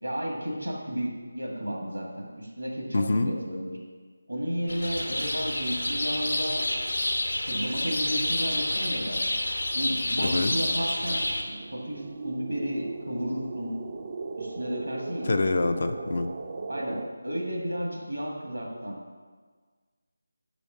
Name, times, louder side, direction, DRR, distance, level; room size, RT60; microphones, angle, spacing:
voice 1, 0.0-3.8 4.3-6.7 7.4-9.4 9.7-11.2 11.7-13.8 14.4-15.4 16.7-19.0, equal, 85° right, -2 dB, 2.0 m, -33 dB
voice 2, 2.9-3.3 10.2-10.5 15.2-16.3, left 2 dB, 50° left, 8 dB, 0.5 m, -25 dB
sound 1, 4.7-11.4, left 1 dB, 80° left, 1.1 m, -29 dB
sound 2, 11.0-17.1, right 3 dB, 35° right, 0.4 m, -38 dB
5.1 x 5.0 x 6.3 m, 1.5 s
figure-of-eight pair, 160°, 0 cm